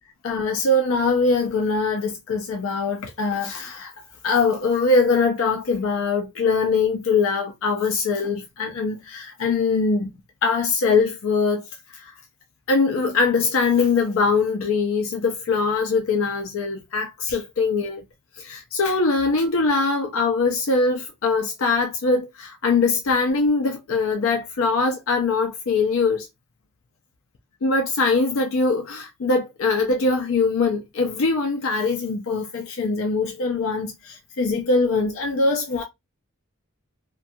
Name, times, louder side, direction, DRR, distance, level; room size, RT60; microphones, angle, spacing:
voice 1, 0.2-3.9 4.2-10.1 10.4-11.6 12.0-12.1 12.7-18.0 18.4-26.3 27.6-35.8, left 4 dB, 75° left, 0.5 m, -22 dB
2.3 x 2.2 x 2.6 m
head